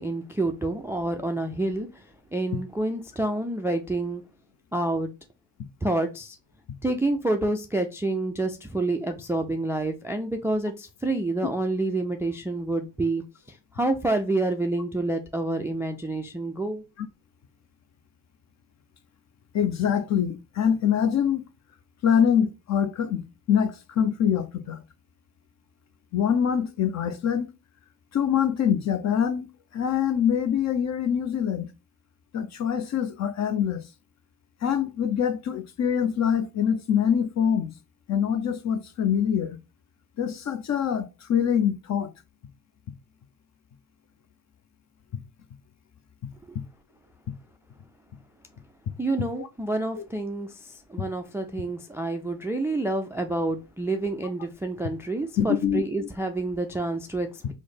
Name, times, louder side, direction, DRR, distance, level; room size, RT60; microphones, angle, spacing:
voice 1, 0.0-2.1 2.3-4.2 4.7-5.1 5.8-6.4 6.8-16.8 46.5-46.6 49.0-57.5, right 2 dB, 5° right, 0.3 m, -28 dB
voice 2, 19.5-21.4 22.0-23.2 23.5-24.8 26.1-27.5 28.1-29.5 29.7-31.7 32.3-33.8 34.6-37.7 38.1-39.6 40.2-42.1 49.4-49.5 50.0-50.1 55.4-56.1, left 8 dB, 40° left, 0.6 m, -24 dB
3.1 x 2.1 x 4.0 m
supercardioid pair, 65°, 43 cm